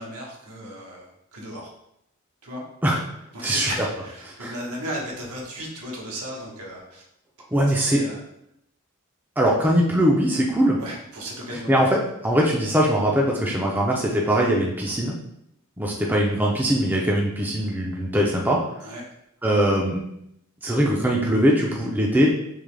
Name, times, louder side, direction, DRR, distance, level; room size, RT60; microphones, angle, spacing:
voice 1, 0.0-1.7 2.4-2.6 3.3-7.0 7.7-8.2 10.8-11.9 18.8-19.1, equal, 85° right, -1 dB, 1.1 m, -35 dB
voice 2, 7.5-8.0 9.4-10.8 11.7-12.0 12.2-15.1 15.8-18.6 19.4-20.0 20.6-22.3, equal, 10° right, -3 dB, 0.4 m, -21 dB
3.7 x 2.9 x 3.3 m, 0.77 s
head